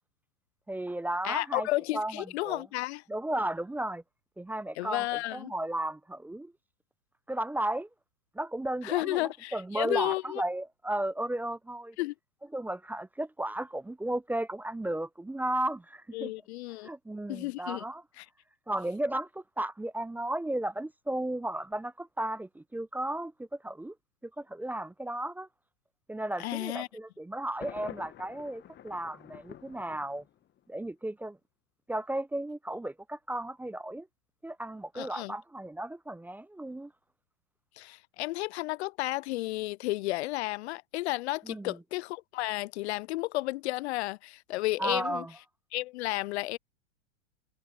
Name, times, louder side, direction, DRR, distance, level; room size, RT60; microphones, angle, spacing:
voice 1, 0.7-1.7 1.9-2.6 3.1-4.0 4.4-5.1 5.3-6.5 7.3-7.9 8.3-12.0 12.5-16.3 16.8-18.0 18.7-23.9 24.2-25.5 26.1-30.2 30.7-31.4 31.9-34.1 34.4-36.9 41.4-41.8 44.8-45.3, right 1 dB, 5° right, 0.6 m, -34 dB
voice 2, 1.2-3.0 4.8-5.5 8.8-10.4 12.0-12.1 16.1-16.9 17.3-17.8 18.2-18.3 26.4-26.9 35.0-35.3 37.8-45.2 45.7-46.6, left 19 dB, 55° left, 0.5 m, -32 dB
Thunder, 27.6-30.6, left 11 dB, 25° left, 1.5 m, -48 dB
hypercardioid pair, 105°, 40 cm